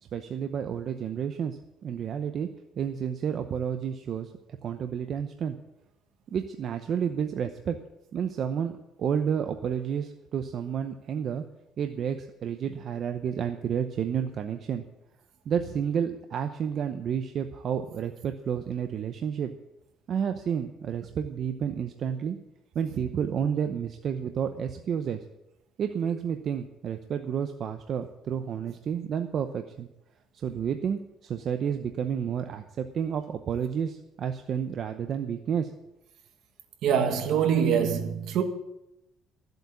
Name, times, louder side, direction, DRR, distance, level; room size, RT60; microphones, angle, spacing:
voice 1, 0.1-1.6 1.8-2.5 2.8-4.3 4.6-5.6 6.3-7.8 8.1-8.7 9.0-11.4 11.8-14.8 15.5-19.5 20.1-22.4 22.7-25.2 25.8-29.9 30.3-35.7, right 8 dB, 45° right, 0.8 m, -30 dB
voice 2, 36.8-38.4, right 8 dB, 65° right, 1.9 m, -24 dB
13.5 x 8.0 x 8.4 m
cardioid pair, 150°, 0 cm